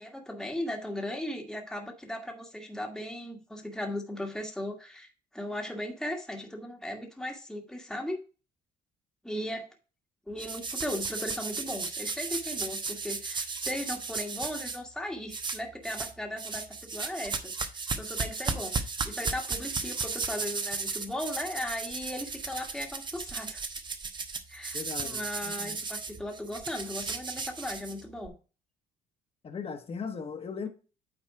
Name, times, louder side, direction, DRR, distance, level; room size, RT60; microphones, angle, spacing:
voice 1, 0.0-8.2 9.2-9.7 10.3-23.6 24.5-28.3, left 1 dB, 5° left, 1.5 m, -37 dB
sound 1, 10.4-14.8 15.3-16.1 16.4-28.3, right 4 dB, 25° right, 1.0 m, -35 dB
voice 2, 24.7-25.3 25.6-25.8 29.4-30.7, left 5 dB, 35° left, 1.3 m, -37 dB
8.8 x 4.1 x 4.7 m
cardioid pair, 110°, 17 cm